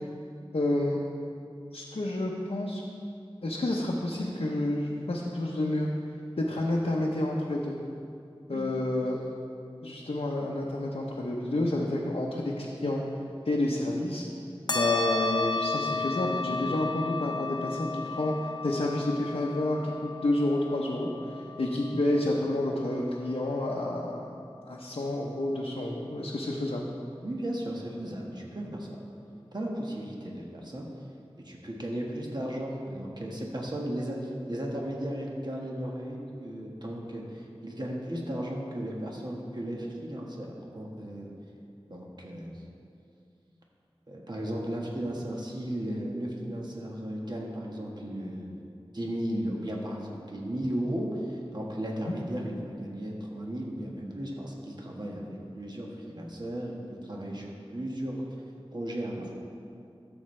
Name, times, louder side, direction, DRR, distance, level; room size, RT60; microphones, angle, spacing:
voice 1, 0.5-1.0 1.7-2.8 3.4-5.9 6.4-7.8 8.5-9.2 9.8-13.0 13.4-14.2 14.7-24.3 24.7-26.9 52.0-52.1, left 1 dB, 85° left, -3 dB, 0.8 m, -29 dB
sound 1, 14.7-23.6, left 3 dB, 45° left, 0.8 m, -34 dB
voice 2, 27.2-29.0 29.5-30.9 31.4-41.3 41.9-42.6 44.1-48.6 48.9-58.3 58.7-59.3, right 1 dB, 45° right, -2 dB, 1.4 m, -35 dB
13.5 x 7.1 x 3.3 m, 2.5 s
wide cardioid pair, 55°, 10 cm